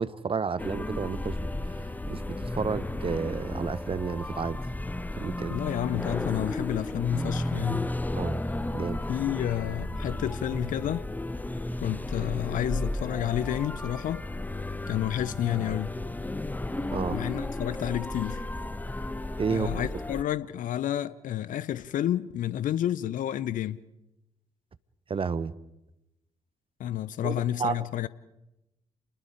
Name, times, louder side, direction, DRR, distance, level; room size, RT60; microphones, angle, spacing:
voice 1, 0.0-1.4 1.6-4.6 5.2-5.6 8.1-8.4 8.7-9.0 16.9-17.2 19.4-19.7 25.1-25.5 27.2-27.8, right 5 dB, 35° right, 1.1 m, -31 dB
sound 1, 0.6-20.2, left 1 dB, 10° left, 1.1 m, -33 dB
voice 2, 5.5-7.9 9.1-11.1 11.8-14.2 14.9-15.9 17.1-18.5 19.5-23.8 26.8-28.1, left 12 dB, 55° left, 0.8 m, -30 dB
29.0 x 20.5 x 5.0 m
figure-of-eight pair, 45°, 16 cm